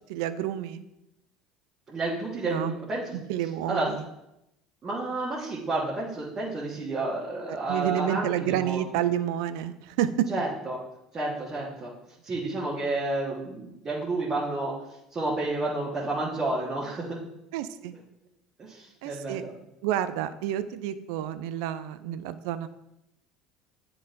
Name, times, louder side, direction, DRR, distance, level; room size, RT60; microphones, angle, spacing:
voice 1, 0.1-0.8 2.5-2.8 3.3-4.1 7.5-10.3 17.5-17.9 19.0-19.4 19.8-22.7, right 11 dB, 65° right, 12 dB, 0.4 m, -29 dB
voice 2, 1.9-3.2 3.7-3.9 4.8-8.8 10.3-10.8 11.1-11.9 12.2-14.7 15.1-17.2 18.6-19.5, right 2 dB, 30° right, -6 dB, 1.6 m, -30 dB
10.0 x 3.8 x 2.6 m, 0.86 s
figure-of-eight pair, 60°, 3 cm